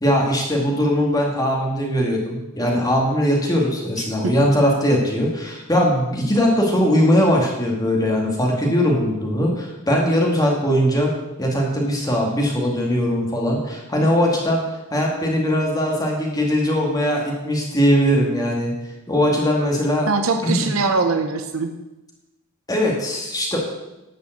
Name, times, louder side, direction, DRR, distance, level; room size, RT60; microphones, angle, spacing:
voice 1, 0.0-11.1 11.4-14.6 14.9-18.7 19.1-20.1 20.4-20.7 22.7-23.6, equal, 20° left, -1 dB, 2.1 m, -20 dB
voice 2, 4.0-4.3 20.1-21.7, right 3 dB, 70° right, 7 dB, 0.8 m, -22 dB
11.0 x 5.5 x 7.9 m, 0.99 s
head